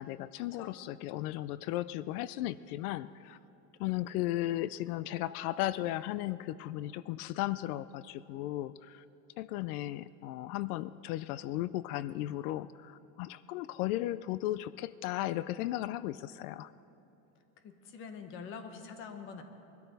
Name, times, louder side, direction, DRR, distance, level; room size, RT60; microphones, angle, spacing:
voice 1, 0.0-3.4 3.8-9.0 9.4-16.7, left 15 dB, 85° left, 17 dB, 0.5 m, -35 dB
voice 2, 17.6-19.4, left 6 dB, 30° left, 7 dB, 0.9 m, -45 dB
22.5 x 13.0 x 4.1 m, 2.9 s
cardioid pair, 180°, 43 cm